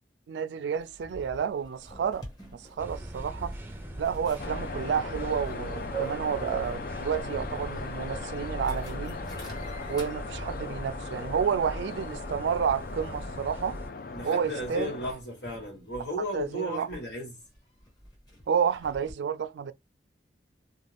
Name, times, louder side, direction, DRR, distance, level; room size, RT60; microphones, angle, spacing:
voice 1, 0.3-3.5 4.0-9.2 9.9-13.8 14.2-15.0 16.3-16.9 18.5-19.7, right 7 dB, 80° right, 0.3 m, -30 dB
sound 1, 0.8-19.1, equal, 25° left, 1.2 m, -51 dB
sound 2, 2.8-13.9, right 2 dB, 10° right, 0.4 m, -39 dB
sound 3, 4.4-15.1, left 4 dB, 50° left, 0.4 m, -39 dB
voice 2, 14.1-17.3, left 1 dB, 80° left, 1.5 m, -35 dB
2.5 x 2.3 x 3.3 m
head